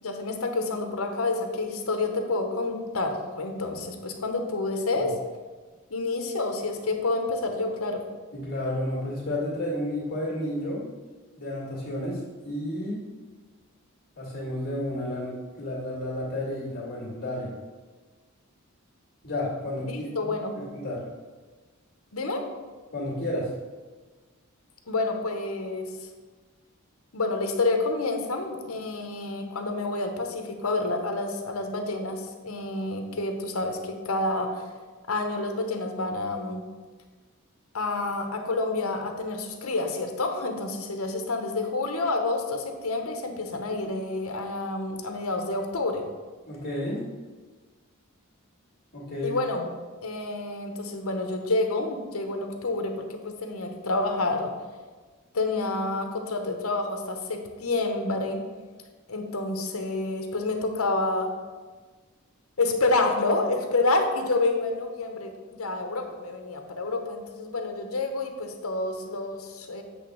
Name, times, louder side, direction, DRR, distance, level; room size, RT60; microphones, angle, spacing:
voice 1, 0.0-5.1 5.9-8.0 19.8-20.6 22.1-22.4 24.9-26.1 27.1-34.7 35.1-36.6 37.7-46.0 49.2-49.7 50.0-54.5 55.3-58.4 59.1-61.3 62.6-69.8, left 2 dB, 70° left, 5 dB, 1.1 m, -28 dB
voice 2, 8.3-10.9 11.4-13.0 14.2-17.5 19.2-21.1 22.9-23.5 46.5-47.0 48.9-49.4, left 1 dB, 45° left, -5 dB, 2.1 m, -31 dB
8.2 x 3.4 x 6.3 m, 1.3 s
head